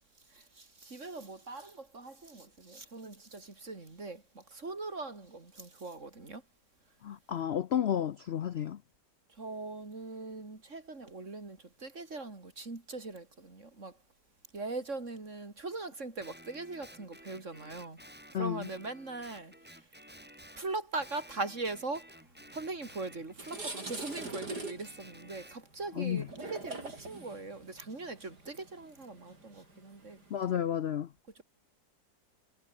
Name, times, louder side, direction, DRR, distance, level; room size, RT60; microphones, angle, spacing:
voice 1, 0.3-6.4 9.3-14.0 14.5-18.0 18.3-19.8 20.6-22.2 22.5-30.2 31.4-31.5, right 3 dB, 45° right, 4.3 m, -41 dB
voice 2, 7.0-8.8 18.3-18.7 26.0-26.3 30.3-31.1, left 9 dB, 70° left, 0.6 m, -31 dB
Guitar, 16.2-20.7 21.0-25.6, equal, 5° right, 7.6 m, -54 dB
sound 1, 22.7-22.8 23.2-30.5, right 2 dB, 70° right, 6.4 m, -44 dB
omnidirectional pair, 1.8 m